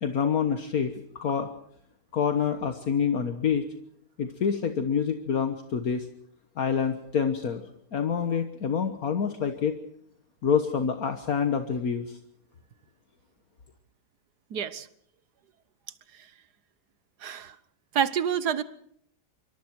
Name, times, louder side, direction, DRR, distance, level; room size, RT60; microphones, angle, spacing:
voice 1, 0.0-1.5 2.1-3.6 4.2-6.1 6.6-7.6 7.9-9.8 10.4-12.2, left 7 dB, 60° left, 7 dB, 1.7 m, -27 dB
voice 2, 14.5-14.9 17.2-17.5 17.9-18.6, right 8 dB, 75° right, 14 dB, 1.6 m, -27 dB
26.0 x 25.0 x 4.6 m, 0.66 s
omnidirectional pair, 1.8 m